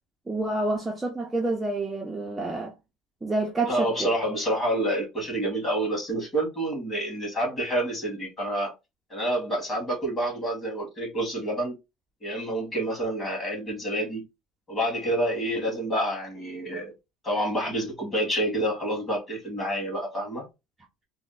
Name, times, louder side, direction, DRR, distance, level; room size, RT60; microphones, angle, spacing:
voice 1, 0.3-2.7 3.2-4.1, right 2 dB, 10° right, 0.5 m, -28 dB
voice 2, 3.7-8.7 9.1-11.8 12.2-14.2 14.7-16.9 17.2-20.4, right 1 dB, 15° left, 2.0 m, -28 dB
3.4 x 2.0 x 4.0 m
cardioid pair, 150°, 0 cm